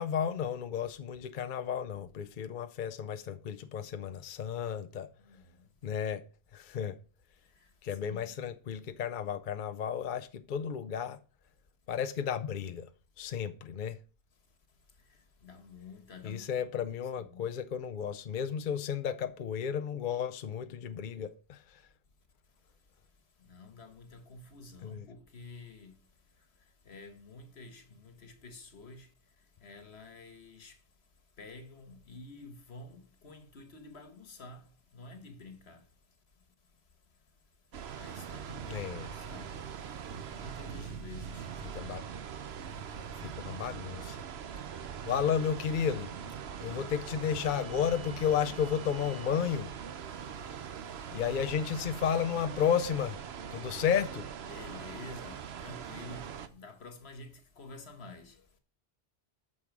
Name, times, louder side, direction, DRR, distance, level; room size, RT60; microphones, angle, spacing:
voice 1, 0.0-5.1 5.8-6.2 6.5-7.0 7.8-11.2 11.9-12.9 13.2-14.0 16.2-21.8 24.8-25.0 38.7-39.1 41.7-42.0 43.2-44.2 45.1-46.1 46.6-49.7 51.1-53.2 53.5-54.3, left 8 dB, 55° left, 0.7 m, -33 dB
voice 2, 5.2-5.6 7.5-7.7 8.1-8.5 15.4-17.5 23.4-26.0 26.8-29.1 29.6-30.8 31.4-35.8 38.0-39.7 40.3-41.5 46.5-47.0 54.4-58.4, left 3 dB, 80° left, 1.7 m, -50 dB
sound 1, 37.7-56.5, right 7 dB, 75° right, 1.0 m, -42 dB
8.7 x 6.5 x 6.0 m
omnidirectional pair, 1.1 m